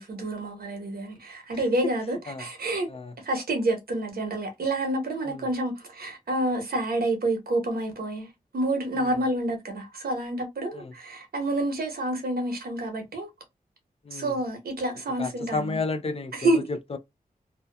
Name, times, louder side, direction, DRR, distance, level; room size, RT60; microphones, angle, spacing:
voice 1, 0.0-2.9 3.2-13.3 14.1-15.8 16.3-16.6, right 1 dB, 80° right, 0.9 m, -28 dB
voice 2, 14.0-14.4 15.2-17.0, left 3 dB, 40° left, 0.4 m, -32 dB
2.7 x 2.2 x 2.2 m
wide cardioid pair, 100°, 15 cm